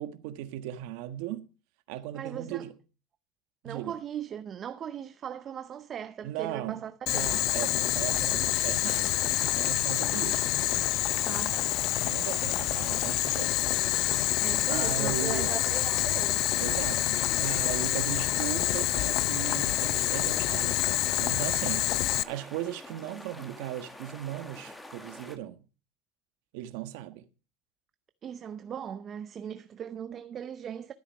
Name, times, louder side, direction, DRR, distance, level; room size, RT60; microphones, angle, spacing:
voice 1, 0.0-1.5 1.9-2.7 3.6-4.0 6.2-10.5 12.0-13.8 14.7-15.5 16.6-25.7 26.5-27.3, right 13 dB, 75° right, 1.3 m, -37 dB
voice 2, 2.1-2.7 3.6-7.3 11.2-11.7 14.4-16.4 28.2-30.9, right 8 dB, 35° right, 0.6 m, -38 dB
Boiling, 7.1-22.2, left 16 dB, 60° left, 0.5 m, -27 dB
sound 1, 8.9-25.4, left 1 dB, 10° left, 1.7 m, -47 dB
13.5 x 8.3 x 5.3 m
supercardioid pair, 120°, 0 cm